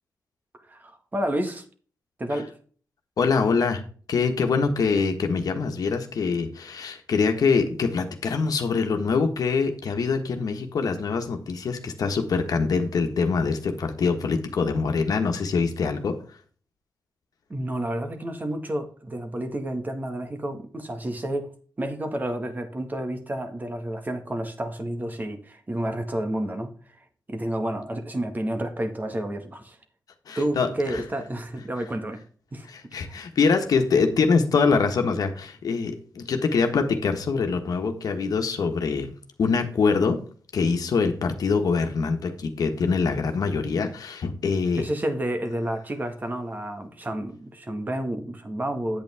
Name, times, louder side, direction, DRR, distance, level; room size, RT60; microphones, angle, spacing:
voice 1, 0.7-1.6 2.2-2.5 17.5-21.5 21.8-26.7 27.3-29.8 30.3-32.2 32.5-33.2 44.8-49.0, right 1 dB, 25° right, 6 dB, 1.7 m, -30 dB
voice 2, 3.2-16.2 30.3-31.0 32.7-39.1 39.4-40.2 40.5-44.9, left 5 dB, 70° left, 5 dB, 1.5 m, -24 dB
8.8 x 8.4 x 3.6 m, 0.42 s
cardioid pair, 95°, 7 cm